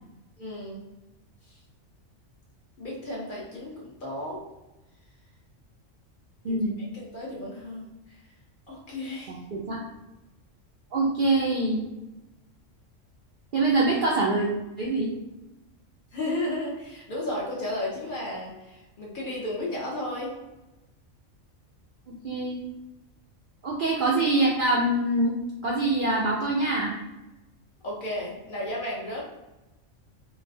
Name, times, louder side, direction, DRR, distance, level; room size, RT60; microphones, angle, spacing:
voice 1, 0.4-0.9 1.5-1.6 2.8-4.4 6.4-8.2 8.7-9.4 16.1-20.3 27.8-29.2, left 1 dB, 50° left, -4 dB, 0.8 m, -34 dB
voice 2, 9.3-9.8 10.9-11.8 13.5-14.5 14.8-15.1 22.2-22.6 23.6-25.3 25.6-26.9, right 2 dB, 65° right, -4 dB, 0.5 m, -24 dB
3.9 x 2.1 x 2.6 m, 1.0 s
omnidirectional pair, 1.3 m